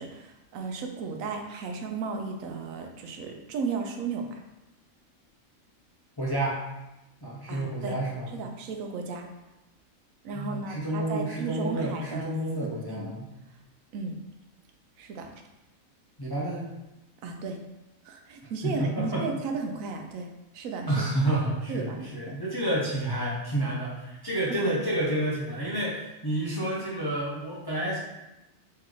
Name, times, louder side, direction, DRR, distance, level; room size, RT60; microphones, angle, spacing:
voice 1, 0.0-4.4 7.5-8.0 8.3-9.3 10.2-12.3 12.6-13.1 13.9-14.2 15.0-15.3 17.2-17.6 18.0-21.0 21.7-22.4 24.5-24.7, right 4 dB, 80° right, 4 dB, 1.0 m, -35 dB
voice 2, 6.2-6.6 7.2-8.3 10.3-13.3 16.2-16.7 18.6-19.3 20.9-28.0, right 1 dB, 30° left, -6 dB, 0.5 m, -29 dB
3.3 x 3.1 x 3.7 m, 0.97 s
omnidirectional pair, 1.4 m